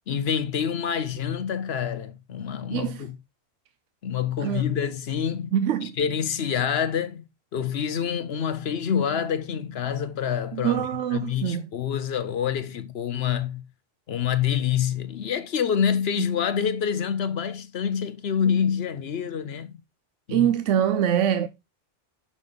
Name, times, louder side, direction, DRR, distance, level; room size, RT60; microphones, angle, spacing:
voice 1, 0.1-3.1 4.0-5.5 6.0-7.3 7.5-10.9 11.1-13.6 14.1-19.8 20.3-20.5, left 8 dB, 60° left, 0.9 m, -27 dB
voice 2, 2.7-3.1 4.4-4.6 5.5-6.0 10.5-11.7 20.3-21.5, right 10 dB, 90° right, 0.9 m, -24 dB
6.2 x 5.5 x 3.8 m
omnidirectional pair, 1.2 m